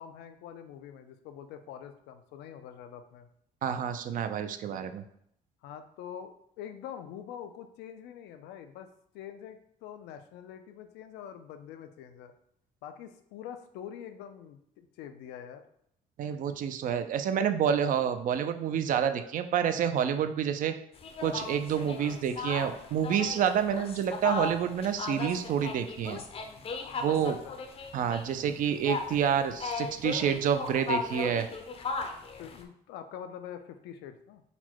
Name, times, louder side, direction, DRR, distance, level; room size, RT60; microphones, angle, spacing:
voice 1, 0.0-3.3 5.6-12.3 12.8-15.6 21.9-22.1 27.1-27.6 32.4-34.4, left 9 dB, 85° left, 8 dB, 0.4 m, -45 dB
voice 2, 3.6-5.0 16.2-20.7 21.2-26.2 27.0-27.3 27.9-31.5, right 8 dB, 50° right, 9 dB, 0.4 m, -28 dB
sound 1, 21.0-32.6, left 4 dB, 35° left, 0.5 m, -37 dB
4.0 x 2.1 x 4.5 m, 0.70 s
cardioid pair, 110°, 17 cm